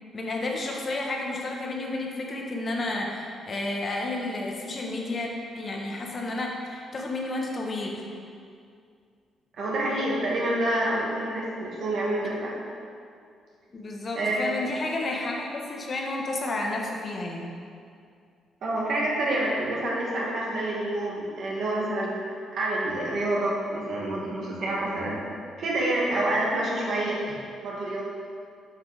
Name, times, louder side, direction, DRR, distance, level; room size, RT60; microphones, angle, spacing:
voice 1, 0.1-8.0 13.7-17.5, left 2 dB, 40° left, 0 dB, 1.3 m, -31 dB
voice 2, 9.6-12.6 14.1-14.5 18.6-25.2 25.6-27.2 27.6-28.0, right 1 dB, 60° right, -4 dB, 2.1 m, -27 dB
7.6 x 5.9 x 5.0 m, 2.3 s
cardioid pair, 90°, 0 cm